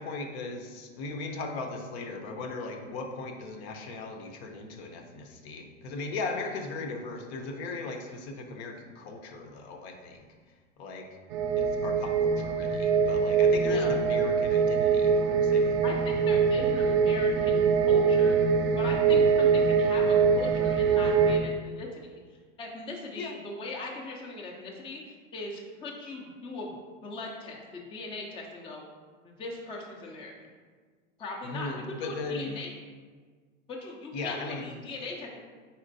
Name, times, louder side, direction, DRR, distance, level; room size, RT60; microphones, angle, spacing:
voice 1, 0.0-10.3 10.8-11.1 11.6-15.8 23.2-23.4 31.4-32.6 34.1-34.8, left 3 dB, 55° left, 4 dB, 0.7 m, -37 dB
sound 1, 11.3-21.4, right 5 dB, 40° right, 0.4 m, -23 dB
voice 2, 13.6-13.9 15.8-18.4 18.6-22.2 22.6-26.7 27.0-28.8 29.2-30.5 31.2-31.7 32.0-32.7 33.7-35.4, left 2 dB, 15° left, -1 dB, 0.5 m, -40 dB
4.2 x 4.2 x 2.6 m, 1.5 s
hypercardioid pair, 105°, 39 cm